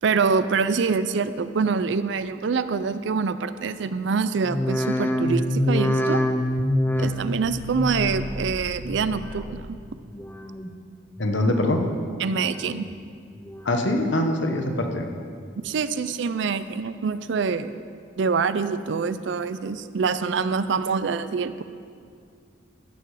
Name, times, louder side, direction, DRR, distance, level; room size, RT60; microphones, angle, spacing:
voice 1, 0.0-6.2 7.0-9.8 12.2-12.9 15.6-17.8 18.2-21.6, right 5 dB, 65° right, 13 dB, 0.4 m, -25 dB
sound 1, 4.4-9.8 10.1-10.7 11.2-11.8 12.3-12.9 13.4-14.0 14.5-15.1 15.6-15.7, left 1 dB, 10° left, 0.5 m, -27 dB
voice 2, 11.2-11.8 13.6-15.1, left 1 dB, 65° left, 4 dB, 1.0 m, -23 dB
15.0 x 6.8 x 4.8 m, 2.2 s
head